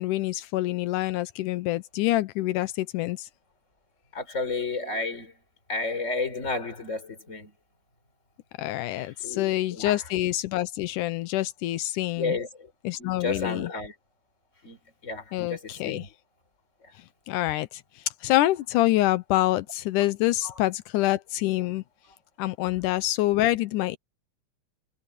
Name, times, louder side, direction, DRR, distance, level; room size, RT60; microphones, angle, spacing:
voice 1, 0.0-3.3 8.6-12.4 12.8-13.7 15.3-16.1 17.3-17.8 18.2-21.8 22.4-24.0, left 16 dB, 90° left, 1.8 m, -26 dB
voice 2, 4.1-5.3 5.7-7.5 8.9-10.0 12.2-12.7 13.0-13.9 14.6-14.8 15.0-16.1 20.4-20.5, left 3 dB, 20° left, 4.1 m, -32 dB
omnidirectional pair, 4.5 m